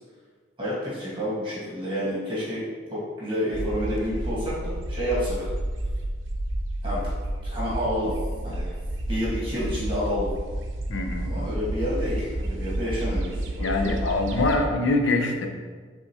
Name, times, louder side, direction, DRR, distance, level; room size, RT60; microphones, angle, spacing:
voice 1, 0.6-2.6 2.9-5.5 6.8-7.0 7.4-8.2 8.4-8.7 9.1-10.3 11.2-13.9, equal, 25° right, -9 dB, 1.5 m, -29 dB
sound 1, 3.5-14.7, right 1 dB, 80° right, 0.5 m, -30 dB
voice 2, 10.9-11.3 13.6-15.5, left 2 dB, 80° left, 4 dB, 0.5 m, -24 dB
5.3 x 3.4 x 2.8 m, 1.5 s
head